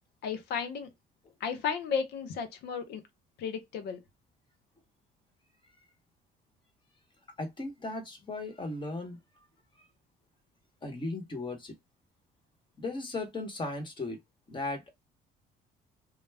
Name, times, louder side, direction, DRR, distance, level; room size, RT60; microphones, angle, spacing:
voice 1, 0.2-0.9 1.4-3.0 3.4-4.0, left 6 dB, 80° left, 0.8 m, -33 dB
voice 2, 7.4-9.2 10.8-11.7 12.8-14.2 14.5-14.9, left 2 dB, 30° left, 1.1 m, -36 dB
2.3 x 2.2 x 3.3 m
cardioid pair, 110°, 17 cm